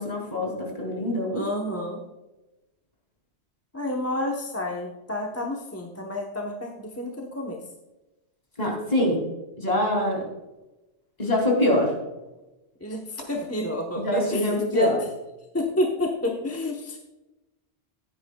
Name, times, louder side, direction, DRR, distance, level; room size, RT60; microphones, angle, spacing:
voice 1, 0.0-1.4 8.6-9.2 9.6-10.2 11.2-11.9 14.0-15.0, left 1 dB, 40° left, -1 dB, 3.0 m, -24 dB
voice 2, 1.3-2.0 3.7-7.6 12.8-15.0 15.5-17.0, left 1 dB, 15° left, 0 dB, 0.9 m, -29 dB
15.0 x 10.0 x 2.3 m, 1.0 s
omnidirectional pair, 1.1 m